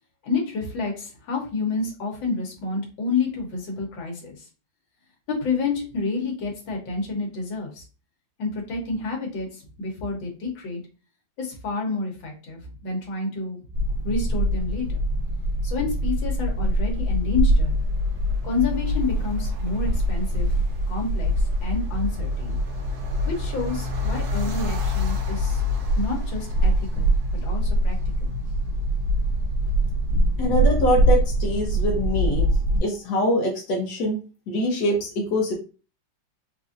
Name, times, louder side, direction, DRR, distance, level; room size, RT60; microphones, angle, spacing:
voice 1, 0.2-4.5 5.3-7.8 8.4-10.8 11.4-13.6 14.0-15.0 15.6-17.7 18.4-20.6 20.9-21.3 21.6-22.6 23.3-25.6 25.9-28.3, left 4 dB, 85° left, 0 dB, 1.8 m, -29 dB
sound 1, 13.7-32.8, equal, 65° right, 1.1 m, -24 dB
voice 2, 30.4-32.5 32.8-34.2 34.5-35.5, left 1 dB, 65° left, -2 dB, 1.4 m, -24 dB
4.3 x 2.6 x 2.5 m, 0.35 s
omnidirectional pair, 2.0 m